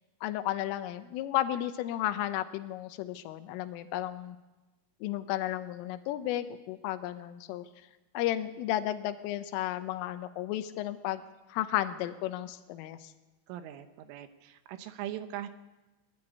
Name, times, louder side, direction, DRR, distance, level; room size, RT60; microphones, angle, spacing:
voice 1, 0.2-4.4 5.0-7.7 8.2-11.2 11.5-13.1, left 13 dB, 85° left, 9 dB, 3.6 m, -33 dB
voice 2, 13.5-15.5, right 11 dB, 80° right, 9 dB, 3.5 m, -40 dB
21.0 x 14.0 x 9.9 m, 1.1 s
omnidirectional pair, 5.7 m